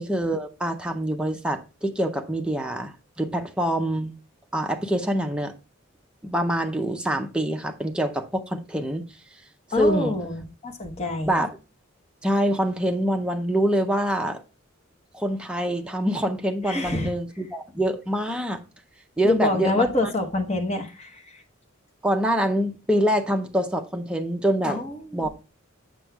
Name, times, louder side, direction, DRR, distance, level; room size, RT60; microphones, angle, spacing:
voice 1, 0.0-4.1 4.5-5.5 6.2-9.0 9.8-10.2 11.3-11.5 12.2-14.4 15.1-18.6 19.2-19.8 22.0-24.8 25.1-25.3, equal, 5° right, 0.5 m, -25 dB
voice 2, 9.7-11.4 16.7-17.1 19.2-21.2 24.6-25.3, left 2 dB, 30° left, 1.0 m, -26 dB
7.5 x 6.2 x 2.3 m
head